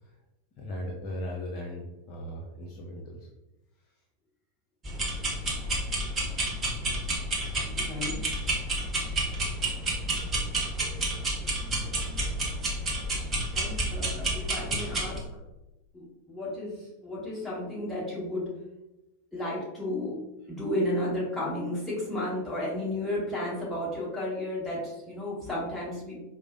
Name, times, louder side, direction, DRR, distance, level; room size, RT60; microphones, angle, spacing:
voice 1, 0.6-3.3, left 1 dB, 35° left, -2 dB, 0.5 m, -38 dB
sound 1, 4.8-15.2, right 1 dB, 20° right, 0.8 m, -30 dB
voice 2, 7.6-8.2 13.5-15.2 15.9-18.5 19.3-20.2 20.5-26.2, left 1 dB, ahead, -8 dB, 1.4 m, -33 dB
4.6 x 2.0 x 2.5 m, 0.98 s
figure-of-eight pair, 90°, 0 cm